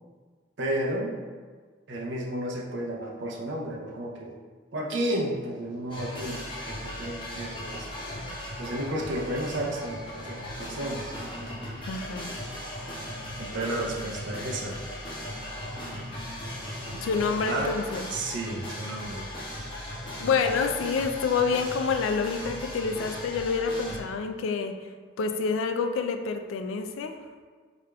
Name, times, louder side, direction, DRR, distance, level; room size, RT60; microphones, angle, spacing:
voice 1, 0.6-1.2 1.9-4.3 4.7-7.9 8.6-11.1 13.4-14.8 17.4-17.7 18.1-19.3, right 1 dB, 65° right, -2 dB, 0.5 m, -32 dB
sound 1, 5.5-7.0 7.4-9.4 10.1-11.7 12.0-14.0 14.5-16.1 16.5-18.5 19.3-20.8 21.2-23.2, equal, 15° right, 1.0 m, -48 dB
sound 2, 5.9-24.0, left 1 dB, 25° left, 0.6 m, -38 dB
voice 2, 11.9-12.3 16.9-18.1 20.2-24.7 25.2-27.1, left 5 dB, 85° left, 7 dB, 0.3 m, -27 dB
4.8 x 2.4 x 2.2 m, 1.5 s
head